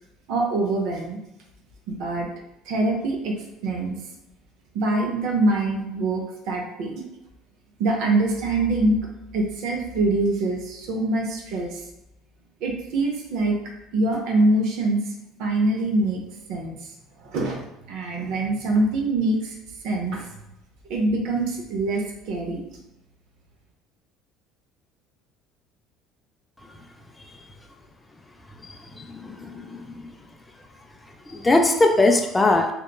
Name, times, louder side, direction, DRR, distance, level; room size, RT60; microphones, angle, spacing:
voice 1, 0.3-1.2 1.9-2.3 2.7-3.3 3.6-4.0 4.7-7.0 7.8-9.0 9.3-11.8 12.6-13.6 13.9-15.0 15.4-16.2 16.5-16.7 17.2-17.6 17.9-19.5 19.8-20.3 20.9-22.6, right 2 dB, 70° right, 1 dB, 0.5 m, -24 dB
voice 2, 29.0-29.8 31.3-32.7, left 2 dB, 15° left, 3 dB, 0.3 m, -20 dB
2.9 x 2.2 x 2.2 m, 0.91 s
supercardioid pair, 95°, 0 cm